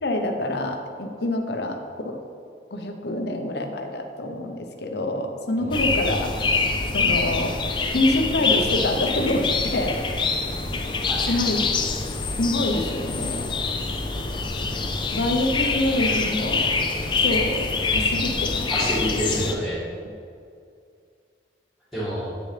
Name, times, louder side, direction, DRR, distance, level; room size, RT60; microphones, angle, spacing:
voice 1, 0.0-1.8 2.0-2.2 2.7-6.3 6.9-7.5 7.9-10.0 11.3-11.7 12.4-13.5 15.1-16.7 17.2-17.6 17.9-18.9, left 1 dB, 65° left, 4 dB, 0.8 m, -26 dB
sound 1, 5.7-19.5, left 4 dB, 25° left, 0.4 m, -25 dB
voice 2, 11.1-11.4 18.7-19.8 21.9-22.3, equal, ahead, -15 dB, 2.0 m, -28 dB
8.9 x 6.5 x 3.3 m, 2.3 s
head